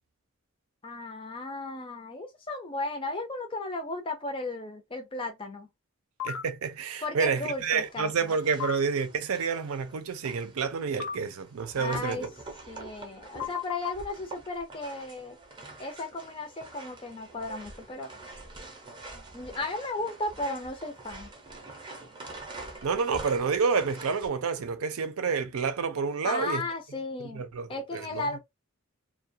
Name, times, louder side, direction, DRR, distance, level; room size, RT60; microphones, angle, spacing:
voice 1, 0.8-5.7 7.0-8.3 11.8-12.3 12.7-15.4 15.8-18.1 19.3-21.3 26.2-27.4 27.7-28.4, left 2 dB, 25° left, 0.5 m, -35 dB
sound 1, 6.2-6.4 8.6-8.8 11.0-11.2 13.4-13.9, left 9 dB, 70° left, 0.6 m, -32 dB
voice 2, 6.2-12.3 22.8-26.6 27.3-28.2, right 5 dB, 85° right, 0.5 m, -29 dB
sound 2, 7.3-24.3, right 2 dB, 20° right, 0.6 m, -46 dB
2.3 x 2.2 x 2.5 m
head